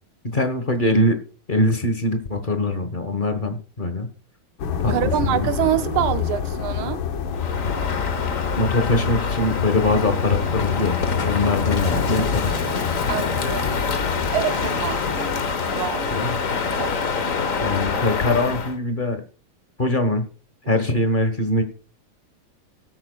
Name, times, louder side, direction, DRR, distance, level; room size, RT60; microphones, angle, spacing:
voice 1, 0.2-1.2 1.5-4.1 4.8-4.9 5.2-5.5 8.6-11.0 11.3-12.5 16.1-16.4 17.6-19.2 19.8-20.2 20.7-21.6, left 1 dB, 30° left, 1.1 m, -22 dB
sound 1, 4.6-16.0, left 7 dB, 70° left, 1.7 m, -29 dB
voice 2, 4.9-7.0 13.0-13.8 14.3-16.2 16.8-17.0, right 12 dB, 80° right, 1.6 m, -26 dB
Crow, 7.3-18.8, left 5 dB, 45° left, 1.3 m, -25 dB
20.0 x 8.7 x 2.3 m
omnidirectional pair, 2.4 m